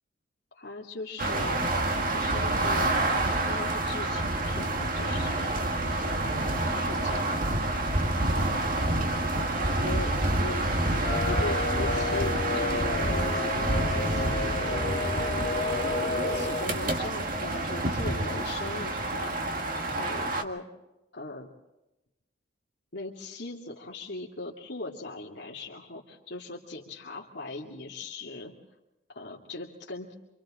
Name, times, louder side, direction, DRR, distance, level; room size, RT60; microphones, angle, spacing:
voice 1, 0.5-1.6 2.1-5.9 6.2-7.6 9.6-10.7 11.3-13.4 13.9-19.3 19.9-20.6 21.1-21.5 22.9-28.5 29.1-30.1, left 2 dB, 65° left, -3 dB, 2.6 m, -40 dB
sound 1, 1.2-20.4, right 2 dB, 45° right, 1.6 m, -28 dB
sound 2, 11.0-16.7, left 4 dB, 40° left, 0.6 m, -32 dB
27.5 x 26.0 x 3.8 m, 0.95 s
head